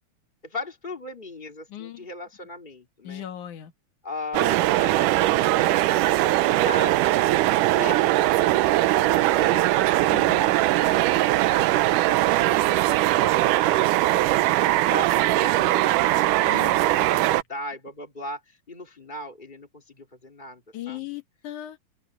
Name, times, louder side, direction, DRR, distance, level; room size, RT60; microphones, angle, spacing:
voice 1, 0.4-3.2 4.0-7.4 7.7-14.5 14.8-21.0, left 2 dB, 15° left, 2.3 m, -39 dB
voice 2, 1.7-2.1 3.0-3.7 10.1-10.5 16.5-17.1 20.7-21.8, left 12 dB, 70° left, 3.1 m, -38 dB
sound 1, 4.3-17.4, right 16 dB, 85° right, 2.2 m, -21 dB
open air
omnidirectional pair, 3.7 m